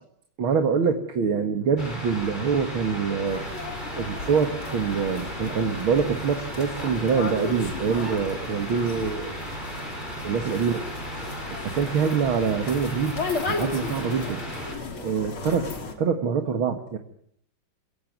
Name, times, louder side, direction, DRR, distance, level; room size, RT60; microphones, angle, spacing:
voice 1, 0.4-3.4 3.9-9.4 10.2-10.8 11.5-13.2 13.4-14.4 15.0-15.7 16.0-17.0, right 6 dB, 80° right, 5 dB, 2.6 m, -25 dB
sound 1, 1.8-14.7, equal, 20° left, 8.1 m, -36 dB
sound 2, 3.3-15.9, left 4 dB, 90° left, 4.1 m, -36 dB
28.0 x 17.0 x 9.5 m, 0.68 s
omnidirectional pair, 2.2 m